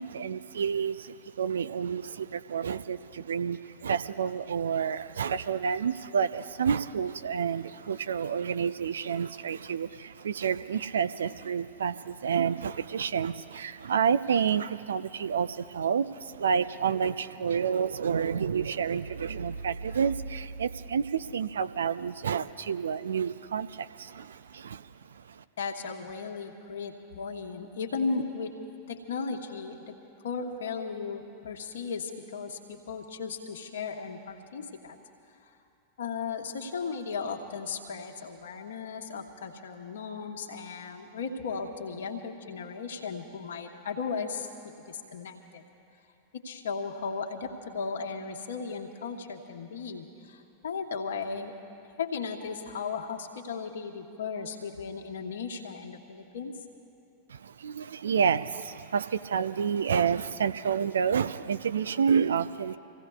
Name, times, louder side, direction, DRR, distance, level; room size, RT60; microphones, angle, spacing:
voice 1, 0.0-25.4 57.3-62.8, right 7 dB, 65° right, 12 dB, 0.4 m, -29 dB
voice 2, 25.6-29.9 30.2-35.0 36.0-44.5 44.9-45.6 46.3-51.5 52.0-56.6, left 5 dB, 65° left, 1 dB, 1.3 m, -36 dB
29.5 x 16.0 x 2.4 m, 2.7 s
figure-of-eight pair, 90°, 0 cm